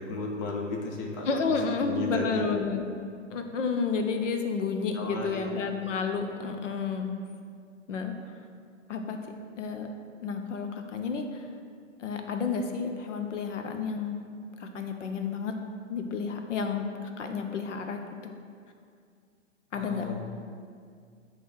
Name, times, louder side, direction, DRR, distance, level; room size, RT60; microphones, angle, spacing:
voice 1, 0.0-2.5 4.9-5.6 19.7-20.2, left 2 dB, 20° left, 0 dB, 0.4 m, -34 dB
voice 2, 1.3-2.8 3.3-7.1 7.9-8.2 8.9-9.2 9.6-9.9 10.2-11.5 12.0-14.2 14.6-15.6 15.9-16.9 17.2-18.3 19.7-20.1, left 5 dB, 70° left, 5 dB, 0.8 m, -31 dB
8.0 x 2.9 x 4.7 m, 2.2 s
figure-of-eight pair, 115°, 39 cm